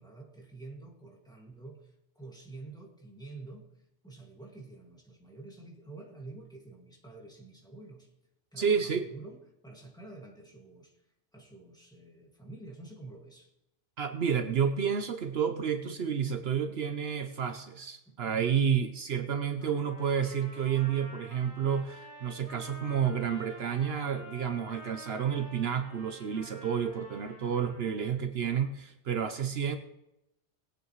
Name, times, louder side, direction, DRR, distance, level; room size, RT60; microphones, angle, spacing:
voice 1, 0.0-3.7 4.0-8.1 8.5-11.0 11.3-13.5 18.1-18.2, right 3 dB, 5° left, -1 dB, 2.0 m, -48 dB
voice 2, 8.6-9.1 14.0-29.8, right 7 dB, 65° right, 8 dB, 1.0 m, -30 dB
Trumpet, 19.6-28.1, left 1 dB, 70° left, 4.0 m, -49 dB
20.0 x 8.9 x 3.1 m, 0.91 s
omnidirectional pair, 1.2 m